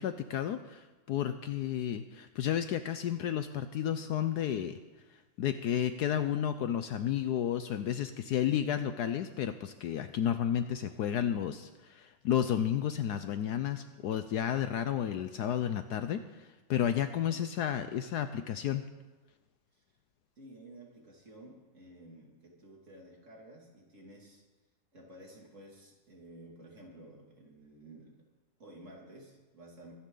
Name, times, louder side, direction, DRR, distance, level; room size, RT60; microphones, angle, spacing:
voice 1, 0.0-4.8 5.4-18.8, left 10 dB, 70° left, 10 dB, 1.1 m, -32 dB
voice 2, 20.4-24.4 24.9-28.2 28.6-29.9, right 1 dB, 40° right, -1 dB, 2.9 m, -53 dB
24.0 x 10.0 x 3.9 m, 1.2 s
omnidirectional pair, 2.0 m